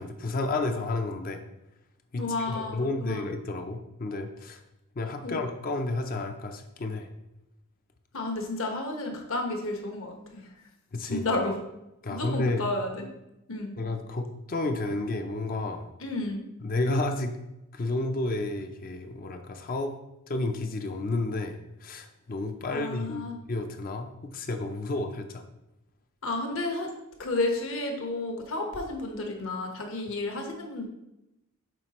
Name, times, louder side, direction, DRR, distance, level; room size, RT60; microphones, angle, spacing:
voice 1, 0.0-1.4 2.1-4.6 5.0-7.1 10.9-11.3 12.0-12.7 13.8-15.9 16.6-17.4 17.7-19.9 20.3-23.2 23.5-25.4, left 2 dB, 40° left, 5 dB, 0.5 m, -31 dB
voice 2, 2.2-3.3 5.2-5.4 8.1-10.5 11.0-11.5 12.1-13.1 13.5-13.7 16.0-16.4 22.7-23.4 26.2-26.9 27.2-30.8, left 2 dB, 65° left, 2 dB, 1.1 m, -31 dB
7.5 x 4.9 x 3.0 m, 0.90 s
head